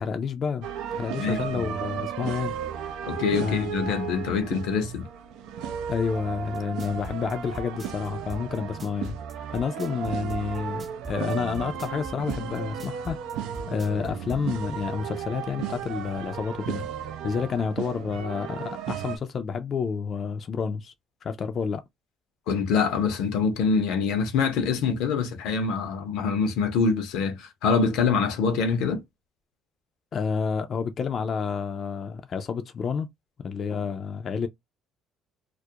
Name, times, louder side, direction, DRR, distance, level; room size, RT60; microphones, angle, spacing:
voice 1, 0.0-3.0 3.4-3.7 5.9-13.2 13.7-16.9 17.2-20.9 21.2-21.8 30.1-33.1 33.4-34.5, left 6 dB, 45° left, 0.4 m, -29 dB
sound 1, 0.6-19.2, right 8 dB, 85° right, 0.4 m, -34 dB
voice 2, 1.2-1.7 3.0-5.1 22.5-29.0, left 5 dB, 85° left, 0.6 m, -25 dB
sound 2, 6.5-14.4, right 1 dB, 25° right, 0.6 m, -39 dB
2.3 x 2.0 x 2.7 m
cardioid pair, 95°, 0 cm